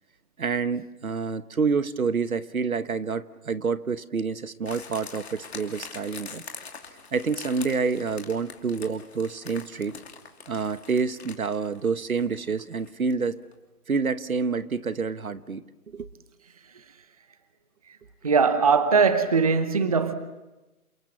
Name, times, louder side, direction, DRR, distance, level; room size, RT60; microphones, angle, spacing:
voice 1, 0.4-6.4 7.1-10.0 10.5-13.4 13.9-15.6 15.9-16.1, right 5 dB, 65° right, 1.2 m, -28 dB
sound 1, 4.7-13.3 13.5-13.6, left 5 dB, 45° left, 2.8 m, -43 dB
voice 2, 18.2-20.1, right 5 dB, 25° right, 0.9 m, -20 dB
28.5 x 24.0 x 7.3 m
figure-of-eight pair, 155°, 45 cm